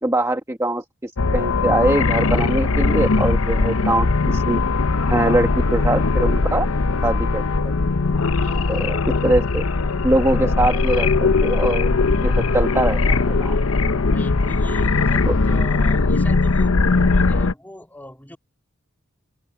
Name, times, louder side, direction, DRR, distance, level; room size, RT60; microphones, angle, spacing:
voice 1, 0.0-4.6 5.1-6.7 7.0-7.7 8.7-8.9 9.2-9.6 10.0-11.9 12.2-13.6 15.3-15.4, right 1 dB, 15° right, 1.3 m, -22 dB
sound 1, 1.2-17.5, left 3 dB, 85° left, 0.8 m, -19 dB
voice 2, 8.4-8.8 14.1-18.4, left 1 dB, 10° left, 3.3 m, -40 dB
head